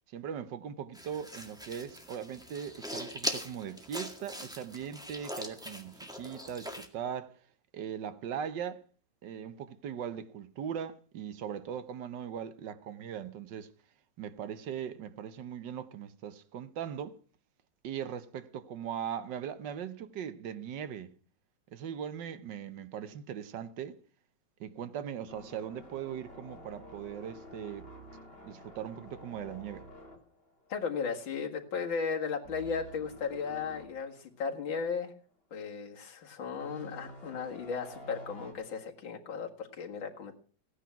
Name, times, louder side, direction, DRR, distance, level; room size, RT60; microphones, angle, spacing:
voice 1, 0.1-7.3 7.7-8.8 9.2-13.7 14.2-17.2 17.8-21.1 21.7-24.0 24.6-27.9 28.4-29.9, right 8 dB, 65° right, 1.5 m, -39 dB
sound 1, 0.9-6.9, equal, ahead, 1.7 m, -41 dB
sound 2, 25.3-31.4 31.6-31.9 32.4-33.9 34.4-34.5 36.6-38.5, equal, 30° left, 2.6 m, -50 dB
voice 2, 30.7-35.1 35.5-40.3, left 5 dB, 70° left, 2.5 m, -35 dB
16.5 x 10.0 x 5.8 m
omnidirectional pair, 2.2 m